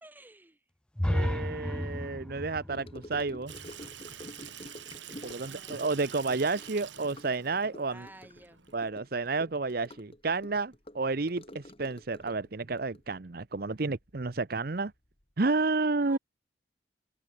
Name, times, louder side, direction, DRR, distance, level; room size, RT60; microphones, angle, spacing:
voice 1, 0.0-0.6 5.2-6.1 7.9-8.7 16.0-16.2, right 1 dB, 10° right, 1.7 m, -53 dB
sound 1, 0.9-4.8, left 1 dB, 5° left, 0.3 m, -34 dB
voice 2, 1.1-3.5 5.2-8.1 8.7-14.9 15.4-16.2, right 3 dB, 55° right, 0.8 m, -31 dB
Gurgling / Sink (filling or washing) / Trickle dribble, 2.7-14.4 14.6-14.9 15.2-15.3, left 1 dB, 30° left, 2.4 m, -49 dB
Water tap faucet / Sink (filling or washing), 3.5-8.9, right 10 dB, 80° right, 3.7 m, -47 dB
head